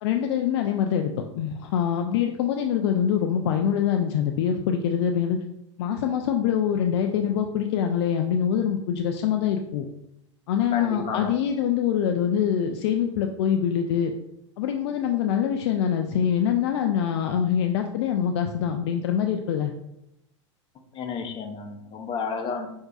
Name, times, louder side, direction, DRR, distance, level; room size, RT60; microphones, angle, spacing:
voice 1, 0.0-5.4 5.8-9.9 10.5-14.1 14.6-19.7, left 8 dB, 60° left, 4 dB, 0.4 m, -24 dB
voice 2, 10.7-11.3 20.9-22.7, left 5 dB, 30° left, 3 dB, 0.7 m, -31 dB
5.9 x 2.6 x 2.4 m, 0.81 s
figure-of-eight pair, 85°, 16 cm